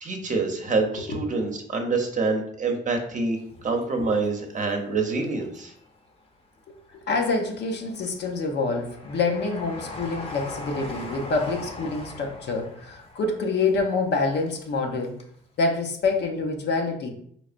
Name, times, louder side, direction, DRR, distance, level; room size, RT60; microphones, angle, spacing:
voice 1, 0.0-5.7, right 3 dB, 40° right, 2 dB, 0.8 m, -26 dB
Train, 3.4-4.6 5.1-6.1 6.6-15.3 15.6-15.7, left 2 dB, 30° left, 0.8 m, -41 dB
voice 2, 6.7-15.1 15.6-17.1, left 3 dB, 60° left, 2 dB, 0.8 m, -26 dB
4.1 x 3.2 x 2.5 m, 0.67 s
cardioid pair, 90°, 20 cm